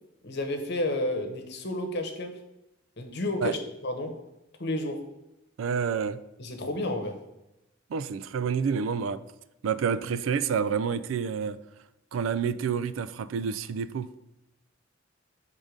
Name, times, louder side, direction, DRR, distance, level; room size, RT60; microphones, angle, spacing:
voice 1, 0.2-2.4 3.0-4.2 4.6-5.0 6.4-7.2, left 1 dB, 55° left, 1.0 m, -31 dB
voice 2, 5.6-6.2 7.9-9.2 9.6-11.6 12.1-14.1, right 6 dB, 75° right, 0.3 m, -28 dB
6.3 x 3.8 x 5.2 m
head